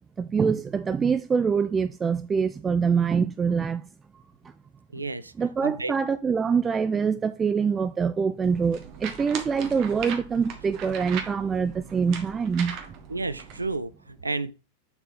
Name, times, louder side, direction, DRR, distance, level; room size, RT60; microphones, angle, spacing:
voice 1, 0.2-3.9 4.1-4.2 5.4-12.8, right 6 dB, 20° right, 0.3 m, -25 dB
voice 2, 4.9-5.3 5.6-5.9 13.1-14.5, right 3 dB, 80° right, 0.5 m, -31 dB
sound 1, 8.4-13.8, right 7 dB, 40° right, 1.4 m, -39 dB
7.0 x 4.2 x 5.2 m
figure-of-eight pair, 90°, 0 cm